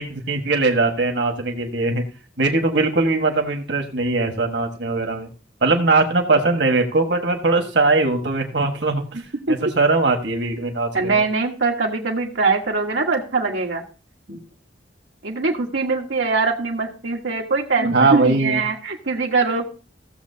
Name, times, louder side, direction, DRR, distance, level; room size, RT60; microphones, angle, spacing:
voice 1, 0.0-2.0 2.4-5.3 5.6-9.0 9.5-11.2 14.3-14.4 17.8-18.6, right 3 dB, 70° right, 4 dB, 1.5 m, -20 dB
voice 2, 9.1-9.5 10.9-13.8 15.2-19.6, right 4 dB, 90° right, -1 dB, 1.4 m, -22 dB
16.0 x 7.2 x 2.7 m, 0.36 s
head